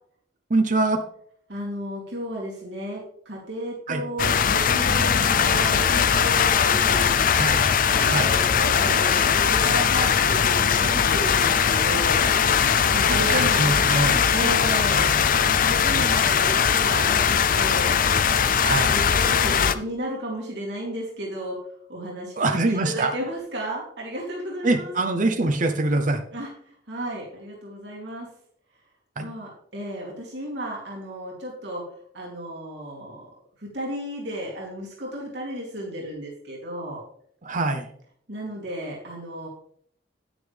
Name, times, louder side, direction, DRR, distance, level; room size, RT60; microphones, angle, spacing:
voice 1, 0.5-1.0 3.9-4.0 7.3-7.6 8.1-8.3 12.9-14.3 18.6-19.0 22.4-23.1 24.6-26.2 29.2-29.3 37.4-37.9, right 2 dB, 45° right, 6 dB, 0.8 m, -24 dB
voice 2, 1.5-7.2 7.9-12.6 12.9-13.7 14.3-15.1 15.4-18.0 18.6-21.6 21.9-24.9 26.3-28.3 29.2-31.9 32.1-33.3 33.6-37.0 38.3-39.5, right 1 dB, 70° right, -4 dB, 3.1 m, -33 dB
sound 1, 4.2-19.7, left 7 dB, 50° left, 0.5 m, -20 dB
9.9 x 9.9 x 3.4 m, 0.63 s
head